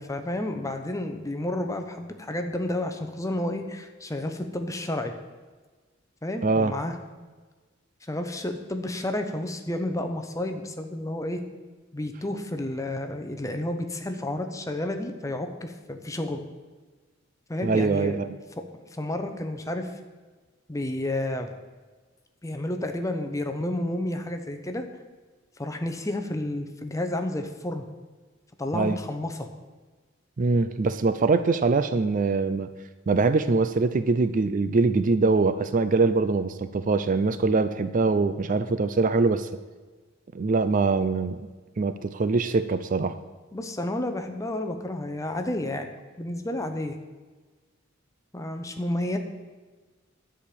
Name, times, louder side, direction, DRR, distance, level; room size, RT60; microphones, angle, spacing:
voice 1, 0.0-5.1 6.2-7.0 8.1-11.4 11.9-16.5 17.5-18.1 18.9-19.9 20.7-21.5 22.4-24.9 25.6-27.9 28.6-29.5 43.5-45.9 46.2-47.0 48.3-49.2, left 1 dB, 15° left, 6 dB, 0.8 m, -31 dB
voice 2, 6.4-6.7 17.6-18.3 28.7-29.0 30.4-32.7 33.1-39.5 40.3-41.5 41.8-43.2, right 3 dB, 40° right, 12 dB, 0.4 m, -23 dB
11.0 x 5.1 x 8.4 m, 1.3 s
head